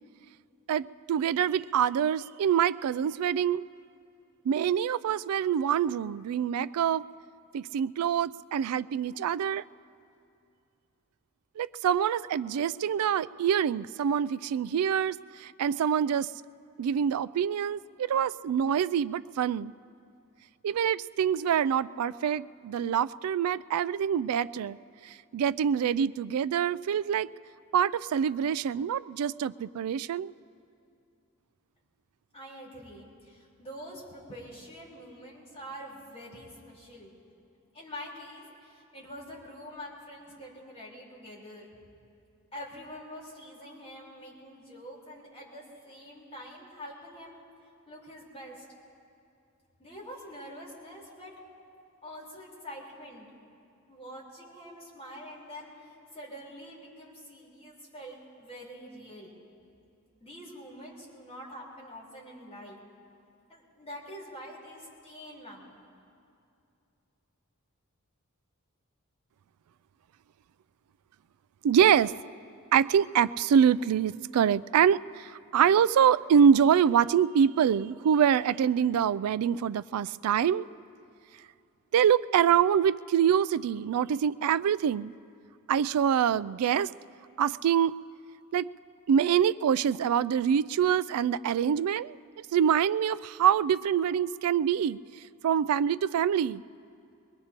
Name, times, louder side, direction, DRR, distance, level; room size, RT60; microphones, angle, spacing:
voice 1, 0.7-3.6 4.5-7.0 7.5-9.6 11.6-16.3 16.8-19.7 20.6-24.8 25.0-27.3 27.7-30.3 71.6-72.2 72.7-80.6 81.9-85.1 85.7-86.9 87.4-87.9 88.5-88.7 89.1-95.0 95.4-96.6, right 8 dB, 85° right, 17 dB, 0.3 m, -25 dB
voice 2, 32.3-37.1 37.7-41.7 42.5-47.4 47.9-48.6 49.8-51.3 52.0-53.3 53.9-59.3 60.2-62.8 63.5-65.9, equal, 30° left, -5 dB, 4.0 m, -45 dB
24.0 x 20.0 x 2.9 m, 2.6 s
head